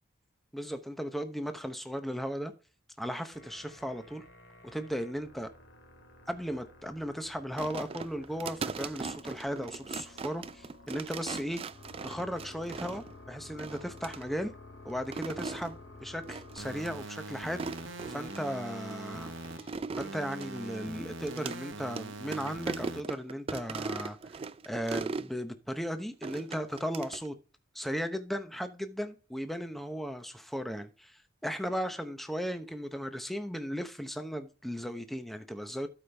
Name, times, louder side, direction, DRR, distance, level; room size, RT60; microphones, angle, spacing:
voice 1, 0.5-2.5 3.0-4.2 4.7-5.5 6.3-11.6 12.0-14.5 14.8-15.8 16.0-17.6 18.1-19.3 20.0-24.2 24.6-27.4 27.7-35.9, equal, ahead, 0.8 m, -36 dB
sound 1, 3.3-19.8, left 2 dB, 60° left, 2.3 m, -53 dB
sound 2, 7.6-13.1 13.6-14.2 14.9-15.7 16.3-16.6 16.8-16.9 17.4-18.4 18.9-21.6 21.9-22.0 22.3-25.3 26.2-27.3, right 4 dB, 30° right, 0.3 m, -39 dB
sound 3, 16.6-19.6 20.0-23.0, right 2 dB, 70° right, 1.2 m, -42 dB
13.0 x 5.1 x 3.4 m
head